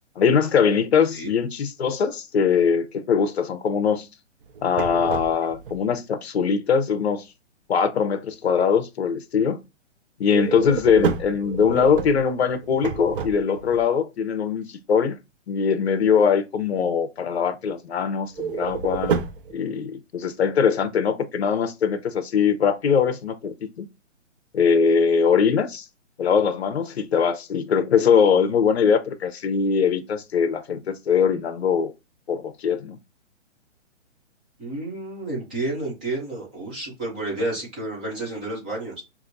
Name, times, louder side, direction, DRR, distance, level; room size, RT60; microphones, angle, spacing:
voice 1, 0.2-4.1 4.6-7.2 7.7-9.6 10.2-15.2 15.5-19.2 19.5-23.9 24.5-25.8 26.2-31.9 32.3-33.0, left 6 dB, 55° left, 0.8 m, -21 dB
sound 1, 4.4-5.8 10.3-13.8 18.3-19.5, right 6 dB, 45° right, 0.7 m, -29 dB
voice 2, 34.6-39.0, right 2 dB, 10° right, 0.5 m, -30 dB
6.0 x 2.7 x 2.6 m
hypercardioid pair, 155°, 37 cm